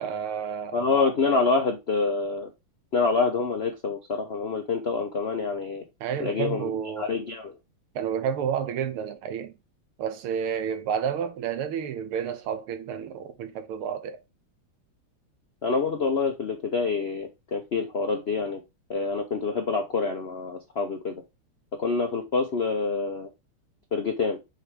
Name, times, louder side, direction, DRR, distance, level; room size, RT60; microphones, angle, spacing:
voice 1, 0.0-0.9 6.0-7.1 8.0-9.5 10.0-14.2, right 8 dB, 80° right, 1.7 m, -30 dB
voice 2, 0.7-2.5 2.9-5.8 6.2-6.7 7.0-7.5 15.6-18.6 18.9-21.1 21.8-23.3 23.9-24.4, left 4 dB, 85° left, 0.5 m, -26 dB
6.3 x 3.4 x 5.0 m
omnidirectional pair, 2.4 m